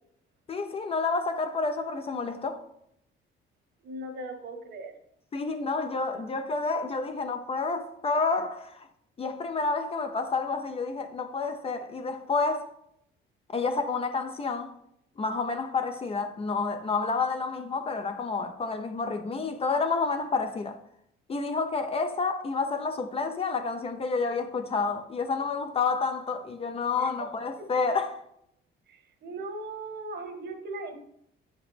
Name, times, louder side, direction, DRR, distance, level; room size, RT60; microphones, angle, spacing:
voice 1, 0.5-2.6 5.3-8.9 9.2-12.7 13.5-14.7 15.2-20.8 21.3-28.2, left 4 dB, 30° left, 0.5 m, -29 dB
voice 2, 3.8-4.9 27.0-27.1 27.6-27.7 28.9-30.9, right 2 dB, 60° right, 1.3 m, -38 dB
9.0 x 5.1 x 3.3 m
cardioid pair, 145°, 20 cm